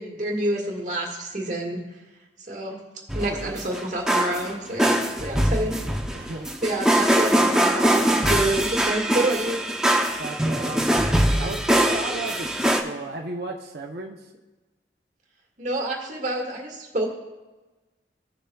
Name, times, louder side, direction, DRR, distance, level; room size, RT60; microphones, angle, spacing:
voice 1, 0.0-1.8 2.5-2.8 3.1-5.8 6.6-9.6 15.6-17.1, right 1 dB, 45° right, 0 dB, 1.7 m, -28 dB
sound 1, 3.1-12.8, right 1 dB, 5° right, 0.6 m, -22 dB
voice 2, 3.2-3.6 6.1-6.6 10.2-11.1 11.4-14.3, right 2 dB, 60° right, 2 dB, 0.7 m, -34 dB
16.0 x 6.8 x 2.3 m, 1.2 s
head